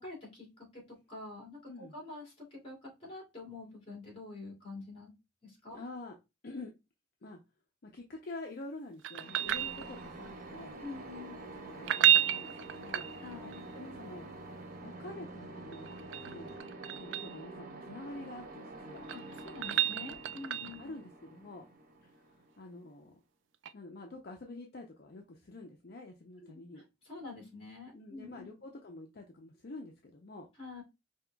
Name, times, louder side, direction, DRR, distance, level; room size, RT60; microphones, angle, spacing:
voice 1, 0.0-0.8 1.1-5.1 5.4-5.8 10.8-11.5 13.2-13.6 19.1-20.9 26.4-26.5 27.0-28.5 30.6-30.8, left 3 dB, 30° left, 2.6 m, -46 dB
voice 2, 5.7-6.2 6.4-6.7 7.2-7.4 7.8-10.8 11.7-13.1 13.7-14.3 14.8-16.7 16.9-19.0 20.6-21.7 22.0-23.2 23.7-26.8 27.9-30.5, left 2 dB, 55° left, 0.6 m, -47 dB
sound 1, 9.0-10.3 11.7-13.6 15.7-17.4 18.8-20.9 23.6-23.7, right 11 dB, 80° right, 0.3 m, -31 dB
sound 2, 9.2-22.8, right 2 dB, 50° right, 0.7 m, -47 dB
Engine, 9.4-16.6, left 1 dB, 15° right, 0.6 m, -60 dB
5.3 x 2.9 x 2.2 m
head